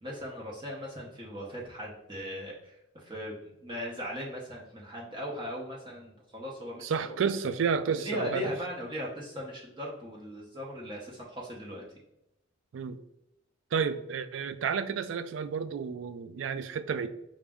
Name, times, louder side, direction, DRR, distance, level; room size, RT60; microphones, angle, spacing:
voice 1, 0.0-7.2 8.0-11.8, equal, 25° right, -3 dB, 0.6 m, -38 dB
voice 2, 6.8-8.4 12.7-13.0 13.7-17.1, right 6 dB, 80° right, 12 dB, 0.3 m, -31 dB
4.9 x 2.1 x 3.4 m, 0.82 s
head